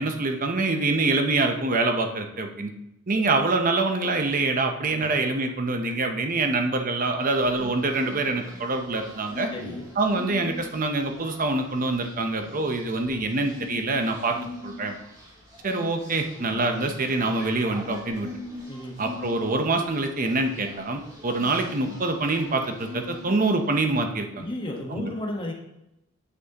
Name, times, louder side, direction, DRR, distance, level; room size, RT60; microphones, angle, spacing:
voice 1, 0.0-2.7 3.1-9.5 10.0-14.4 14.6-14.9 15.6-18.3 19.0-24.4 24.9-25.1, right 2 dB, 40° right, 5 dB, 0.8 m, -25 dB
sound 1, 7.3-24.0, left 2 dB, 20° right, 2.6 m, -42 dB
voice 2, 9.5-9.8 18.7-19.0 24.3-25.5, left 1 dB, 25° left, 0 dB, 1.3 m, -33 dB
9.6 x 6.1 x 3.0 m, 0.86 s
head